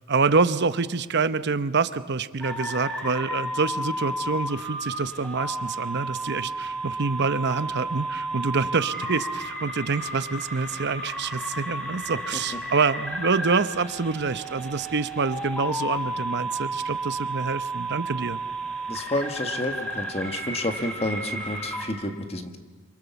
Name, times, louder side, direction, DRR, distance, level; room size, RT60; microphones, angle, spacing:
voice 1, 0.1-18.4, right 4 dB, 55° right, 13 dB, 0.8 m, -26 dB
sound 1, 2.4-21.9, right 1 dB, 5° left, 6.2 m, -32 dB
voice 2, 18.9-22.6, left 1 dB, 30° left, 6 dB, 1.6 m, -30 dB
27.5 x 25.0 x 7.1 m, 1.3 s
head